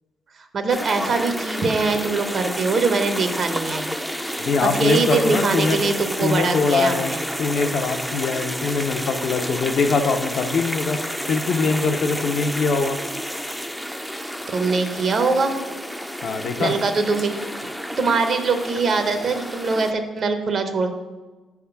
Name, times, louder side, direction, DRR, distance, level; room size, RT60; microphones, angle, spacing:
voice 1, 0.5-3.9 4.6-7.2 14.5-15.5 16.6-17.3 17.6-17.7 18.0-20.9, right 4 dB, 50° right, 7 dB, 0.8 m, -22 dB
sound 1, 0.7-19.9, equal, ahead, 0.4 m, -30 dB
voice 2, 4.4-5.8 6.2-7.1 7.4-11.0 11.2-13.0 16.2-16.8, left 4 dB, 60° left, 6 dB, 0.6 m, -22 dB
6.2 x 3.6 x 5.7 m, 1.2 s
cardioid pair, 90°, 0 cm